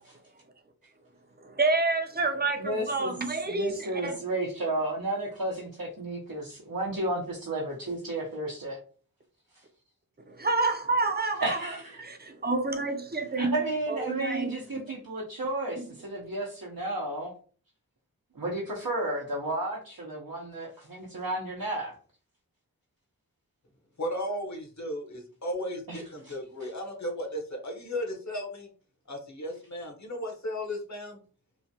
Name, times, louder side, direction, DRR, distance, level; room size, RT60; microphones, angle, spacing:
voice 1, 1.4-4.2 10.3-11.7 12.0-13.6 13.9-14.8, right 3 dB, 30° right, 0.5 m, -29 dB
voice 2, 2.6-3.1 3.5-8.8 11.4-12.0 13.4-17.3 18.3-21.9 25.9-26.3, right 1 dB, 75° right, 0.7 m, -32 dB
voice 3, 24.0-28.7 29.1-31.2, equal, 55° left, 0.9 m, -35 dB
3.1 x 2.1 x 2.7 m
wide cardioid pair, 45°, 34 cm